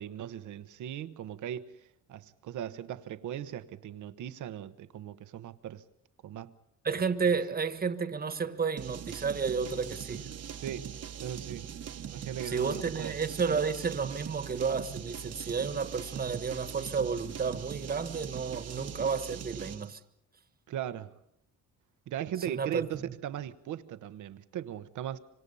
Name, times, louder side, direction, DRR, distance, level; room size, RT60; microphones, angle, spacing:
voice 1, 0.0-1.7 2.1-5.8 6.2-6.5 10.6-10.9 11.2-11.7 12.1-13.2 20.7-21.1 22.1-25.2, right 10 dB, 75° right, 1.1 m, -38 dB
voice 2, 6.8-10.3 12.4-20.0 22.4-23.1, right 5 dB, 30° right, 1.5 m, -31 dB
sound 1, 8.8-19.9, right 9 dB, 55° right, 1.3 m, -41 dB
25.5 x 25.5 x 5.5 m
cardioid pair, 90°, 30 cm